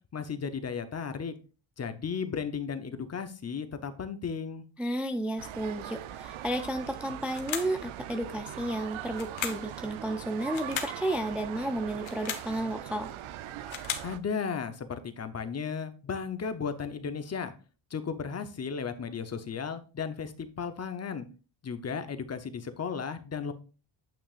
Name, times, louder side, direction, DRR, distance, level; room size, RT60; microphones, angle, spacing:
voice 1, 0.1-1.3 1.8-4.6 14.0-17.5 17.9-21.3 21.6-23.5, left 6 dB, 35° left, 10 dB, 0.8 m, -35 dB
voice 2, 4.8-13.1, right 1 dB, 5° right, 6 dB, 0.4 m, -32 dB
sound 1, 5.4-14.2, right 12 dB, 85° right, 0.6 m, -41 dB
sound 2, 7.3-7.8 9.1-9.7 10.5-11.0 11.9-12.5 13.4-14.1, left 8 dB, 70° left, 1.4 m, -36 dB
9.0 x 5.9 x 2.4 m, 0.35 s
cardioid pair, 130°, 47 cm